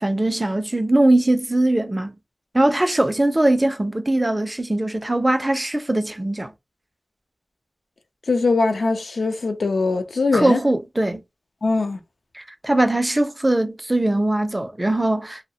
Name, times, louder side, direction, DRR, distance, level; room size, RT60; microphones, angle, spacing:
voice 1, 0.0-2.1 2.5-6.5 10.3-11.2 12.3-15.5, right 1 dB, 20° right, 0.3 m, -21 dB
voice 2, 8.3-10.6 11.6-12.0, left 3 dB, 85° left, 0.5 m, -21 dB
2.7 x 2.0 x 2.7 m
wide cardioid pair, 90°, 0 cm